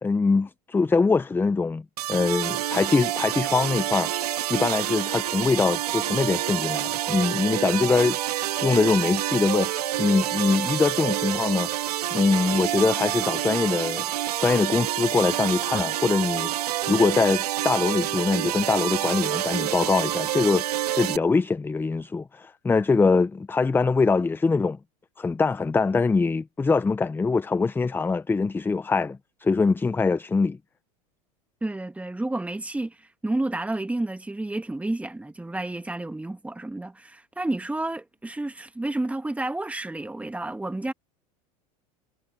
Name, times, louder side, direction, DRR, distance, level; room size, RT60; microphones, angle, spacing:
voice 1, 0.0-1.8 2.1-4.1 4.5-11.7 12.1-14.1 14.4-24.8 25.2-30.6, left 4 dB, 10° left, 0.6 m, -23 dB
sound 1, 2.0-21.2, right 13 dB, 85° right, 1.5 m, -28 dB
voice 2, 31.6-40.9, right 2 dB, 5° right, 1.9 m, -30 dB
hypercardioid pair, 105°, 19 cm